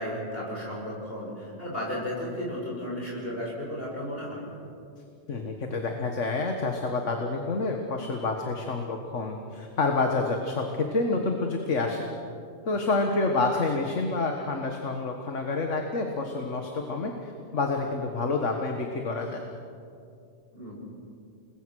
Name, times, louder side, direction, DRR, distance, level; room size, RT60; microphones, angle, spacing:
voice 1, 0.0-4.4 20.5-20.7, equal, 50° left, -4 dB, 6.2 m, -34 dB
voice 2, 5.3-12.1 12.7-19.4, left 3 dB, 75° left, 3 dB, 1.9 m, -28 dB
29.0 x 21.0 x 6.4 m, 2.5 s
omnidirectional pair, 1.3 m